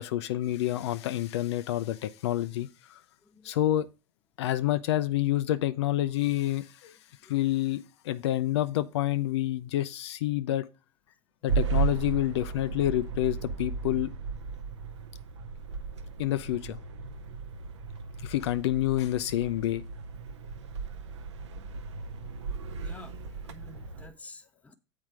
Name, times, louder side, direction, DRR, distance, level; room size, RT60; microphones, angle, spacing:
voice 1, 0.0-3.0 3.4-3.9 4.4-7.0 7.3-10.7 11.4-14.1 16.2-16.8 18.2-19.8, left 14 dB, 70° left, 0.5 m, -28 dB
voice 2, 3.2-3.6 7.2-7.3 22.8-24.7, left 2 dB, 10° left, 0.9 m, -51 dB
sound 1, 11.5-24.1, right 5 dB, 80° right, 0.8 m, -35 dB
7.5 x 4.8 x 4.6 m
hypercardioid pair, 105°, 15 cm